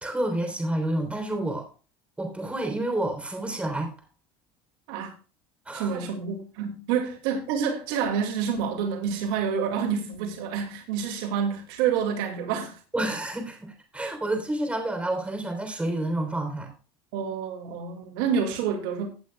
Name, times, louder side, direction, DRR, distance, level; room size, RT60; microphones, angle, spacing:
voice 1, 0.0-1.7 2.2-3.9 5.7-6.0 12.9-16.7, right 1 dB, 10° right, 3.5 m, -29 dB
voice 2, 5.7-12.8 17.1-19.1, right 7 dB, 80° right, 2.2 m, -28 dB
16.5 x 8.1 x 2.3 m
supercardioid pair, 120°, 13 cm